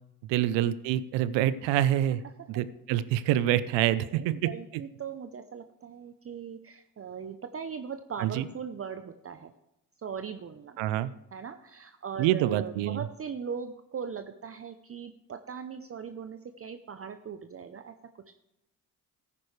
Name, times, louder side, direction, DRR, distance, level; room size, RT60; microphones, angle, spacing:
voice 1, 0.3-2.2 2.5-4.5 8.2-8.5 10.8-11.1 12.2-13.0, right 12 dB, 75° right, 16 dB, 0.7 m, -26 dB
voice 2, 3.9-9.5 10.0-10.8 11.3-18.3, right 6 dB, 30° right, 8 dB, 0.7 m, -40 dB
14.0 x 9.7 x 3.3 m, 0.86 s
hypercardioid pair, 60°, 45 cm